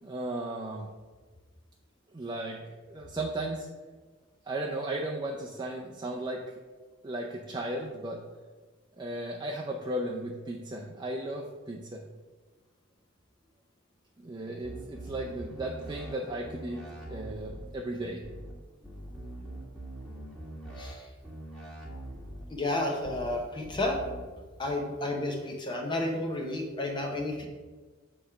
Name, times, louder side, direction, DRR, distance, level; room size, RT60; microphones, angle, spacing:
voice 1, 0.0-0.9 2.1-3.7 4.5-6.4 7.0-8.2 9.0-12.1 14.2-16.8 17.1-18.2, right 1 dB, 20° right, 0 dB, 0.5 m, -35 dB
sound 1, 14.6-16.1 16.4-17.6 18.2-18.5 18.8-20.9 21.2-22.4 23.0-23.3 23.6-24.2, right 1 dB, 5° left, 1.8 m, -43 dB
voice 2, 20.8-21.1 22.5-24.0 24.6-27.5, left 2 dB, 25° left, 1 dB, 0.7 m, -31 dB
7.7 x 3.3 x 5.7 m, 1.3 s
head